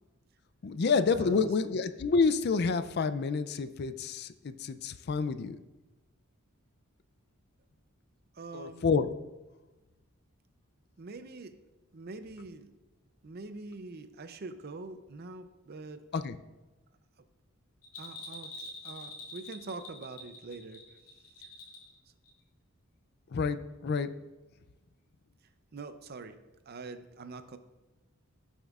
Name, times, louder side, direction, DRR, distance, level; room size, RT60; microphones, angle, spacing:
voice 1, 0.6-5.6 8.5-9.1 16.1-16.4 23.3-24.1, left 4 dB, 50° left, 12 dB, 0.4 m, -28 dB
voice 2, 1.2-1.5 8.3-8.9 11.0-11.6 11.9-12.7 13.2-16.1 18.0-20.9 25.7-26.4 26.7-27.6, right 3 dB, 50° right, 10 dB, 0.6 m, -44 dB
Bell, 17.8-22.0 22.2-22.3, left 2 dB, 90° left, 2.2 m, -45 dB
16.5 x 7.3 x 2.4 m, 1.1 s
head